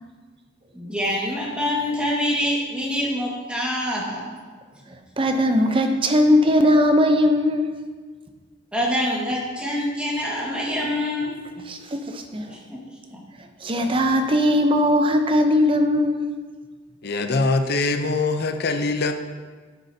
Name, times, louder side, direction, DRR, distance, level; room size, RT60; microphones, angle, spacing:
voice 1, 0.7-4.2 8.7-11.3 12.4-13.2, left 1 dB, 5° right, -5 dB, 1.7 m, -26 dB
voice 2, 5.2-7.7 11.7-11.8 12.1-12.5 13.6-16.2, left 1 dB, 25° right, 5 dB, 0.7 m, -19 dB
voice 3, 17.0-19.1, left 3 dB, 55° left, 7 dB, 0.6 m, -23 dB
9.9 x 8.2 x 2.8 m, 1.4 s
head